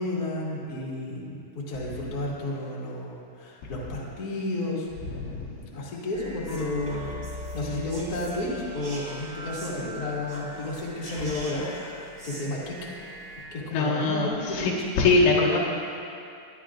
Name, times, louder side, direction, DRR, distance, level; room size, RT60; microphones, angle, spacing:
voice 1, 0.0-4.9 5.5-12.7 13.3-14.9, left 2 dB, 45° left, -6 dB, 1.2 m, -32 dB
sound 1, 6.1-13.4, equal, 40° right, 2.3 m, -40 dB
voice 2, 13.7-15.6, left 3 dB, 70° left, -5 dB, 3.9 m, -22 dB
23.0 x 11.0 x 2.5 m, 2.6 s
omnidirectional pair, 5.9 m